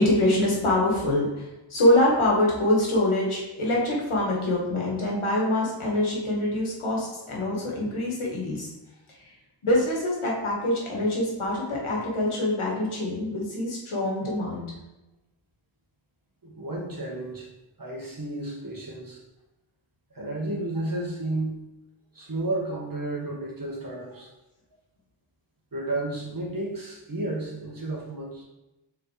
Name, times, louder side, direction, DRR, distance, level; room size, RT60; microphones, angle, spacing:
voice 1, 0.0-8.7 9.2-9.3 9.6-14.6, left 1 dB, 90° left, -3 dB, 1.7 m, -24 dB
voice 2, 16.4-17.5 17.8-19.2 20.1-21.5 22.1-24.3 25.7-28.4, right 2 dB, 45° right, -2 dB, 1.5 m, -32 dB
6.9 x 4.2 x 3.3 m, 0.99 s
wide cardioid pair, 85°, 48 cm